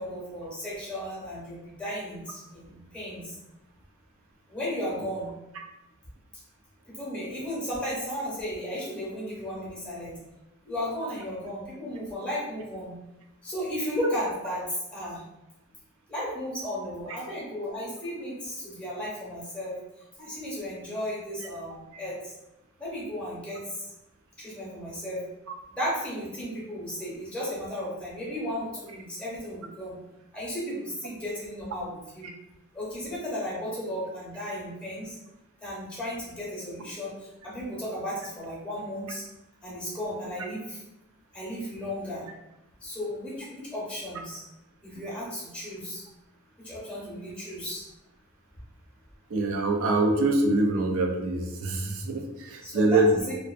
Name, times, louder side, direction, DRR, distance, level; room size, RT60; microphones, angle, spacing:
voice 1, 0.0-3.3 4.5-5.3 6.9-10.1 10.6-13.0 13.4-15.2 16.1-19.7 20.2-22.3 22.8-23.8 24.4-25.2 25.7-30.0 30.3-32.3 32.7-35.2 35.6-37.1 37.4-39.2 39.6-40.8 41.3-42.3 42.8-44.4 44.8-46.0 46.6-47.8 52.6-53.3, equal, 5° left, -5 dB, 0.7 m, -34 dB
voice 2, 49.3-53.2, right 2 dB, 80° right, 3 dB, 0.4 m, -24 dB
2.5 x 2.1 x 2.4 m, 0.94 s
head